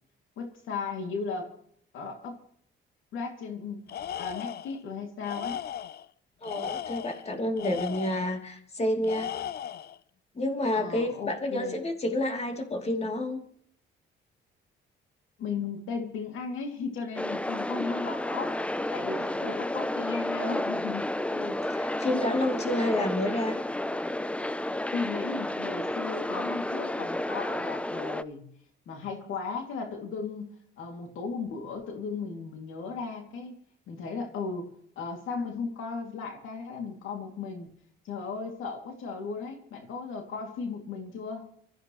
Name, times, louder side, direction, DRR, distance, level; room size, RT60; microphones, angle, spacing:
voice 1, 0.4-1.5 1.9-2.4 3.1-3.8 4.2-5.6 10.7-11.8 15.4-21.1 24.9-28.5 28.9-30.5 30.8-33.5 33.9-34.7 35.0-37.7 38.0-41.5, left 5 dB, 85° left, 4 dB, 2.5 m, -36 dB
Tools, 3.9-4.8 5.2-6.1 6.4-8.4 9.0-10.0, left 9 dB, 55° left, 0.5 m, -36 dB
voice 2, 6.4-9.3 10.4-13.4 19.5-19.6 21.3-23.6, left 1 dB, 30° left, 4 dB, 2.9 m, -29 dB
sound 1, 17.2-28.2, left 1 dB, 5° left, 0.5 m, -31 dB
25.0 x 14.0 x 3.1 m, 0.64 s
cardioid pair, 90°, 20 cm